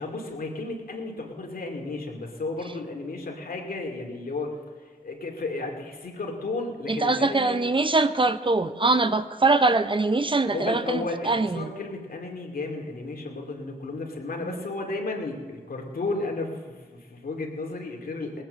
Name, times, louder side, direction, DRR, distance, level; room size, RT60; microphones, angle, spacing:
voice 1, 0.0-4.6 5.0-7.6 10.5-18.4, left 3 dB, 70° left, 1 dB, 2.5 m, -33 dB
voice 2, 6.9-11.7 14.4-14.6, right 3 dB, 35° right, 11 dB, 0.8 m, -23 dB
18.5 x 9.0 x 6.4 m, 1.5 s
cardioid pair, 45°, 16 cm